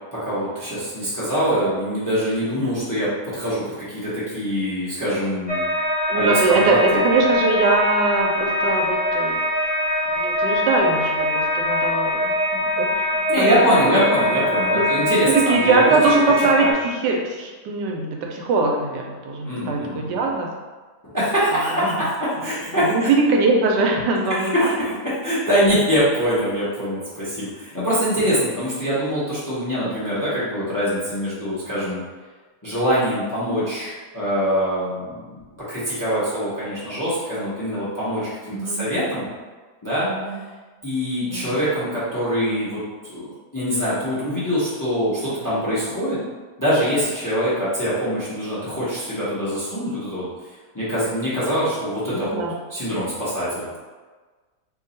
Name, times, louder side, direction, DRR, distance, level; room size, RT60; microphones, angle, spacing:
voice 1, 0.1-5.6 6.1-7.0 13.3-15.8 16.6-16.7 19.4-20.2 21.1-22.1 22.4-23.1 24.4-24.9 25.2-32.0 32.6-35.4 35.7-39.3 39.8-40.1 40.8-42.8 43.1-46.2 46.6-50.3 50.7-52.4 52.7-53.7, equal, 15° left, -10 dB, 0.7 m, -23 dB
sound 1, 5.5-16.7, left 1 dB, 50° left, 0.5 m, -23 dB
voice 2, 6.1-9.4 10.2-12.4 12.8-12.9 13.1-13.6 14.0-14.8 15.5-20.5 22.8-24.8 31.8-32.0 38.5-38.9 40.1-40.4 41.3-41.6 52.2-52.5, right 3 dB, 85° right, 1 dB, 1.2 m, -22 dB
2.9 x 2.6 x 3.9 m, 1.3 s
omnidirectional pair, 1.8 m